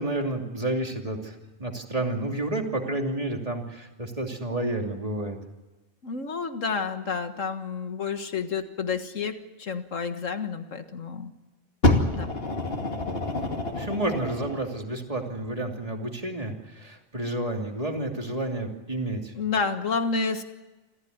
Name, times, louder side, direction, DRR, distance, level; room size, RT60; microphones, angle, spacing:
voice 1, 0.0-5.4 13.7-19.3, right 1 dB, 25° right, 2 dB, 2.9 m, -30 dB
voice 2, 6.0-11.3 12.1-12.3 19.3-20.4, left 5 dB, 70° left, 8 dB, 1.9 m, -30 dB
Fire, 11.8-14.7 15.5-15.6, left 2 dB, 45° left, 2.7 m, -26 dB
27.0 x 15.0 x 9.5 m, 1.1 s
omnidirectional pair, 1.4 m